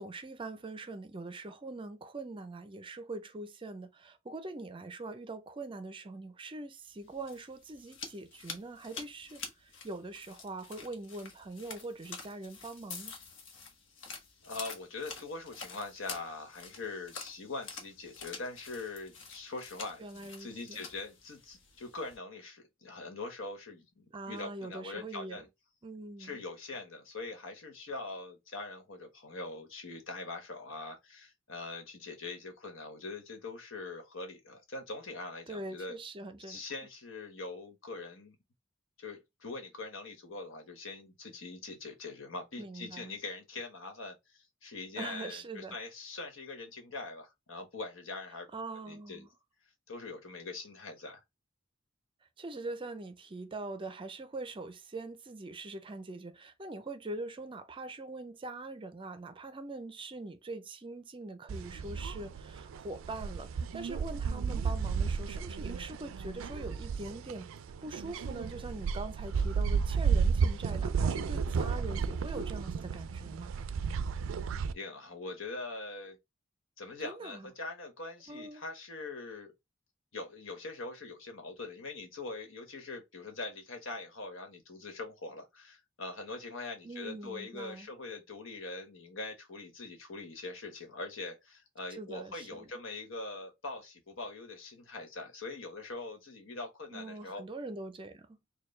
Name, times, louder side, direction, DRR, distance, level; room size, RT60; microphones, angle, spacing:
voice 1, 0.0-13.1 20.0-20.8 24.1-25.4 25.8-26.4 35.5-36.6 42.6-43.2 45.0-45.8 48.5-49.3 52.4-67.5 67.8-73.5 77.0-77.5 78.3-78.6 86.8-87.9 92.0-92.7 96.9-98.4, right 2 dB, 25° right, 0.5 m, -43 dB
sound 1, 7.0-22.2, left 5 dB, 65° left, 1.0 m, -48 dB
voice 2, 14.4-25.5 26.2-35.9 36.5-38.4 39.0-48.5 48.7-49.3 49.9-51.2 74.6-76.2 76.8-79.5 80.1-97.4, left 3 dB, 85° left, 1.3 m, -43 dB
sound 2, 61.5-74.7, right 5 dB, 85° right, 0.4 m, -33 dB
4.4 x 2.3 x 3.2 m
head